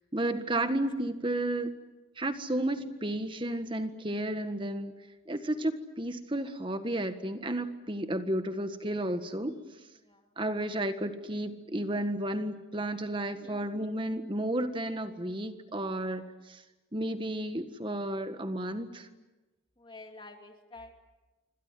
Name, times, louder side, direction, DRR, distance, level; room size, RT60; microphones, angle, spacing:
voice 1, 0.1-1.7 2.2-4.9 5.3-9.6 10.4-16.6 16.9-19.1, right 1 dB, 25° right, 9 dB, 1.6 m, -32 dB
voice 2, 13.3-13.9 19.8-20.9, left 2 dB, 25° left, 4 dB, 2.6 m, -49 dB
27.0 x 25.0 x 7.8 m, 1.1 s
head